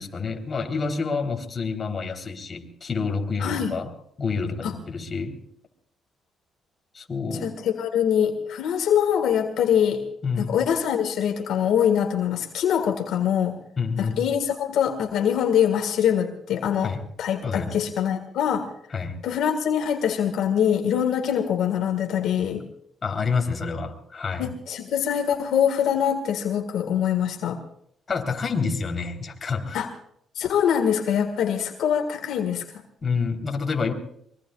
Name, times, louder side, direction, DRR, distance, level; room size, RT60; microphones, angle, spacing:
voice 1, 0.0-3.9 4.2-5.4 6.9-7.5 10.2-10.6 13.8-14.2 16.8-17.0 17.4-17.8 18.9-19.2 23.0-24.5 28.1-29.8 33.0-33.9, left 5 dB, 35° left, 2 dB, 3.6 m, -28 dB
voice 2, 3.4-3.7 4.6-4.7 7.4-10.0 10.4-13.6 14.0-16.9 17.2-18.7 19.2-22.6 24.4-27.6 29.7-29.9 30.4-32.6, left 9 dB, 80° left, 5 dB, 1.8 m, -23 dB
24.0 x 23.0 x 2.4 m, 0.68 s
cardioid pair, 90°, 0 cm